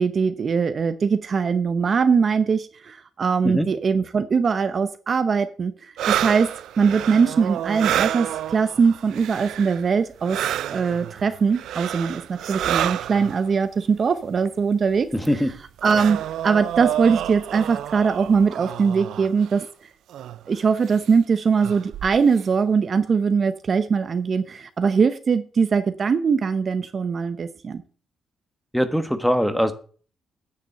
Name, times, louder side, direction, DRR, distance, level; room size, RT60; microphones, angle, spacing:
voice 1, 0.0-6.5 6.8-10.4 10.7-15.1 15.8-19.7 20.5-27.8, right 5 dB, 45° right, 11 dB, 0.8 m, -21 dB
sound 1, 6.0-9.9 10.2-13.5 14.5-14.6 14.9-19.6 20.1-20.4 20.9-21.1 21.6-22.4, right 11 dB, 85° right, 0.4 m, -29 dB
voice 2, 15.1-15.5 28.7-29.7, equal, ahead, 10 dB, 1.4 m, -21 dB
9.6 x 6.9 x 6.7 m, 0.41 s
cardioid pair, 110°, 0 cm